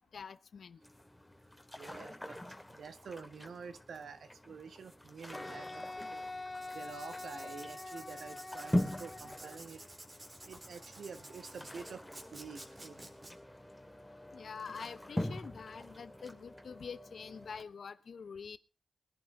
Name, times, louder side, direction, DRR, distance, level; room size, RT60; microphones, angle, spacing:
voice 1, 0.1-0.8 14.3-18.6, left 6 dB, 75° left, 14 dB, 1.0 m, -46 dB
sound 1, 0.8-17.6, left 1 dB, 5° left, 2.5 m, -43 dB
voice 2, 1.7-6.2 6.7-9.8 10.4-12.1 12.3-13.1, right 5 dB, 80° right, 10 dB, 1.6 m, -48 dB
Wind instrument woodwind instrument, 5.3-9.6, left 2 dB, 35° left, 1.8 m, -45 dB
Writing, 6.5-13.3, right 1 dB, 35° right, 3.9 m, -53 dB
21.5 x 11.0 x 3.8 m, 0.32 s
cardioid pair, 50°, 0 cm